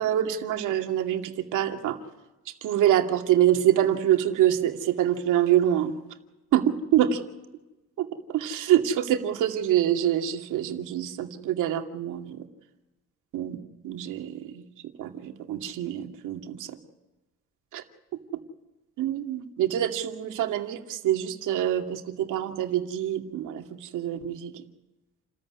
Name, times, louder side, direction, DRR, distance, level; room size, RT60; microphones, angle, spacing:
voice 1, 0.0-2.0 2.5-5.9 6.5-7.2 8.0-12.5 13.3-13.6 13.8-14.6 15.0-16.8 17.7-17.8 19.0-24.6, right 11 dB, 90° right, 4 dB, 2.5 m, -25 dB
29.5 x 14.5 x 9.8 m, 1.0 s
cardioid pair, 90°, 30 cm